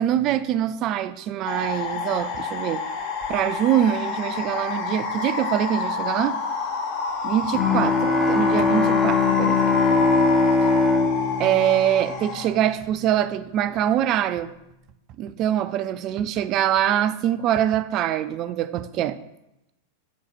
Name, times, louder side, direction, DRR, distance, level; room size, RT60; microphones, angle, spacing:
voice 1, 0.0-2.8 3.3-6.4 7.2-10.0 11.4-14.5 15.2-19.2, right 11 dB, 35° right, 12 dB, 0.4 m, -24 dB
sound 1, 1.5-12.5, left 4 dB, 45° left, 1.0 m, -28 dB
Bowed string instrument, 7.5-12.8, left 4 dB, 10° left, 0.7 m, -22 dB
6.3 x 3.9 x 5.8 m, 0.88 s
figure-of-eight pair, 90°, 0 cm